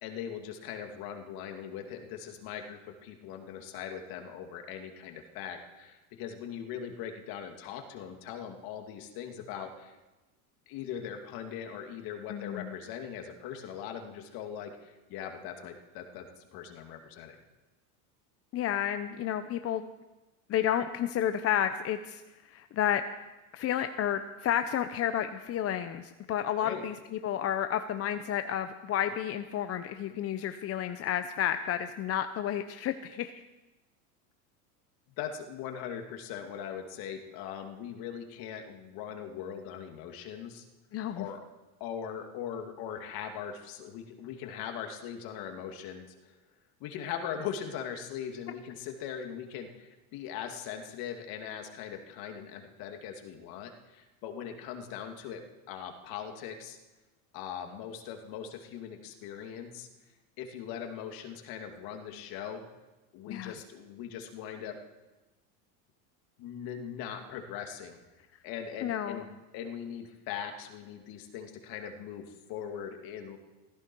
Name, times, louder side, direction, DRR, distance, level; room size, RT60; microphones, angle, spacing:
voice 1, 0.0-10.0 10.7-17.4 26.6-26.8 35.2-40.6 41.2-41.4 41.8-46.3 46.8-56.8 57.3-59.9 60.4-62.6 63.1-64.8 66.4-68.0 68.4-73.4, left 8 dB, 55° left, 4 dB, 2.5 m, -40 dB
voice 2, 12.3-12.7 18.5-19.9 20.5-22.2 22.5-23.3 23.5-33.4 40.9-41.3 63.3-63.5 68.8-69.2, left 10 dB, 35° left, 9 dB, 0.8 m, -31 dB
17.0 x 15.0 x 4.6 m, 1.1 s
supercardioid pair, 120°, 43 cm